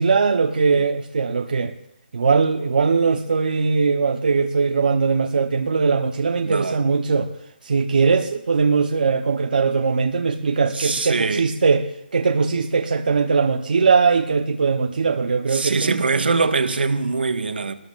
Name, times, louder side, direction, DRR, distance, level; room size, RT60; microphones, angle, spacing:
voice 1, 0.0-1.7 2.1-7.3 7.6-16.0, right 5 dB, 60° right, 1.0 m, -20 dB
voice 2, 6.4-6.8 10.7-11.4 15.5-17.7, right 4 dB, 85° right, 1.6 m, -22 dB
25.5 x 20.0 x 2.6 m
hypercardioid pair, 170°, 5 cm